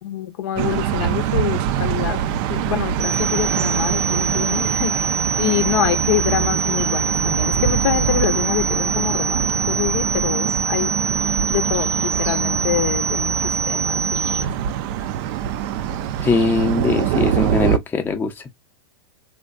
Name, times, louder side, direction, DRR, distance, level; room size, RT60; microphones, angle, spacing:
voice 1, 0.0-2.2 2.5-5.1 5.4-11.0 11.5-14.5, left 11 dB, 65° left, 0.6 m, -25 dB
sound 1, 0.6-17.8, right 10 dB, 50° right, 0.4 m, -24 dB
sound 2, 3.0-14.4, right 4 dB, 85° right, 0.7 m, -25 dB
voice 2, 16.2-18.5, left 4 dB, 15° left, 0.5 m, -21 dB
3.5 x 2.2 x 2.4 m
hypercardioid pair, 115°, 14 cm